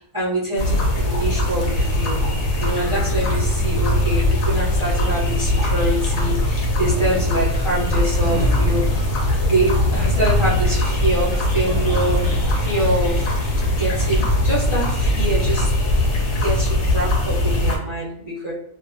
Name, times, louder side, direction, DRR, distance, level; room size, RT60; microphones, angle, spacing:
voice 1, 0.0-2.2 2.6-9.1 9.4-12.2 12.6-13.3 13.7-16.0 16.4-18.5, right 1 dB, 35° right, -9 dB, 0.5 m, -25 dB
sound 1, 0.6-17.8, left 1 dB, 60° left, 0.8 m, -20 dB
sound 2, 6.9-13.3, left 1 dB, 65° right, 0.9 m, -30 dB
2.6 x 2.3 x 2.6 m, 0.72 s
omnidirectional pair, 1.7 m